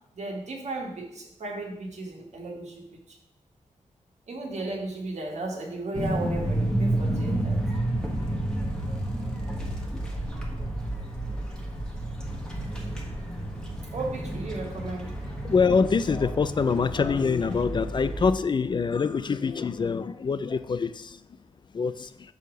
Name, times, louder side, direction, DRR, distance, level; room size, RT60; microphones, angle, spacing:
voice 1, 0.1-3.2 4.3-7.6 13.9-15.1, right 2 dB, 60° right, 0 dB, 1.5 m, -35 dB
sound 1, 5.9-18.3, right 1 dB, 5° left, 1.2 m, -31 dB
voice 2, 15.4-21.2 21.7-22.1, left 5 dB, 35° left, 13 dB, 0.3 m, -25 dB
5.0 x 4.7 x 6.2 m, 0.78 s
wide cardioid pair, 125°, 13 cm